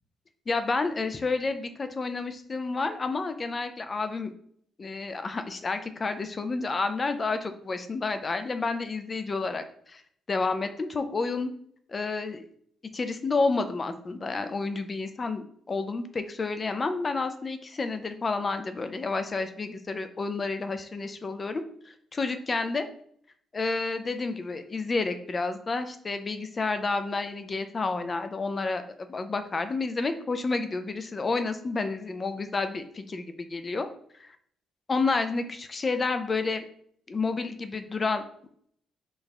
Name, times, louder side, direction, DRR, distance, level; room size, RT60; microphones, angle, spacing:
voice 1, 0.5-4.3 4.8-10.0 10.3-11.5 11.9-12.4 12.9-22.9 23.5-33.9 34.9-36.6 37.1-38.2, left 3 dB, 35° left, 9 dB, 0.4 m, -30 dB
4.0 x 2.4 x 3.3 m, 0.63 s
cardioid pair, 90°, 0 cm